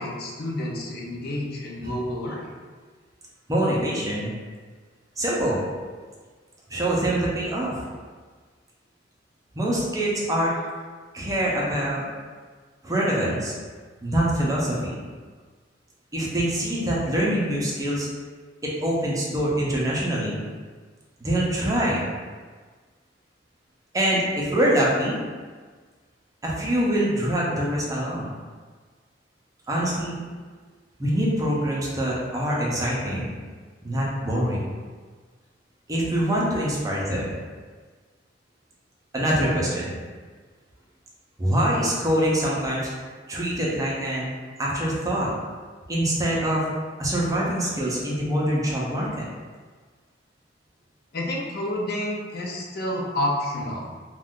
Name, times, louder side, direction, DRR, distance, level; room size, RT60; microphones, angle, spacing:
voice 1, 0.0-2.4 51.1-54.0, left 1 dB, 55° left, -2 dB, 0.6 m, -29 dB
voice 2, 3.5-4.3 5.2-5.6 6.7-7.9 9.5-10.5 11.1-12.0 12.8-13.5 14.0-15.0 16.1-18.1 18.6-20.4 21.2-22.1 23.9-25.2 26.4-28.3 29.7-30.2 31.0-33.3 33.8-34.7 35.9-37.4 39.1-39.9 41.4-42.9 43.3-44.3 44.6-45.3 45.9-46.6 47.0-49.2, right 1 dB, 20° right, -5 dB, 0.6 m, -24 dB
2.5 x 2.3 x 3.6 m, 1.5 s
head